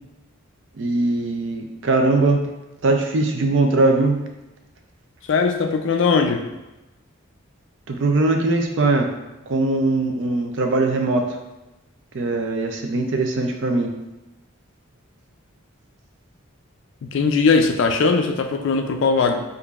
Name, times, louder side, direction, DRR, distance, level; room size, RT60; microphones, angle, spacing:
voice 1, 0.8-2.4 2.8-4.3 7.9-9.1 9.5-11.2 12.1-13.9, right 2 dB, 60° right, 3 dB, 0.4 m, -20 dB
voice 2, 5.3-6.5 17.0-19.4, left 4 dB, 60° left, 5 dB, 0.3 m, -19 dB
4.8 x 2.5 x 2.3 m, 1.0 s
head